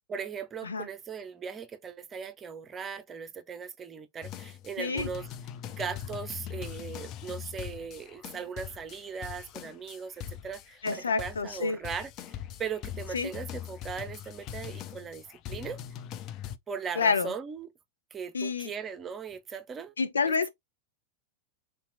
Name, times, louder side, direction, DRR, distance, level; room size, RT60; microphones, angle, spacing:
voice 1, 0.1-5.3 5.7-12.1 12.6-15.8 16.7-17.7 18.1-19.9 20.3-20.4, right 6 dB, 20° right, 0.6 m, -39 dB
sound 1, 4.2-16.6, left 10 dB, 35° left, 0.4 m, -42 dB
voice 2, 4.8-5.1 10.8-11.8 13.1-13.3 17.0-17.3 18.3-18.7 20.0-20.5, left 5 dB, 70° left, 0.6 m, -28 dB
3.8 x 2.8 x 2.6 m
figure-of-eight pair, 90°, 0 cm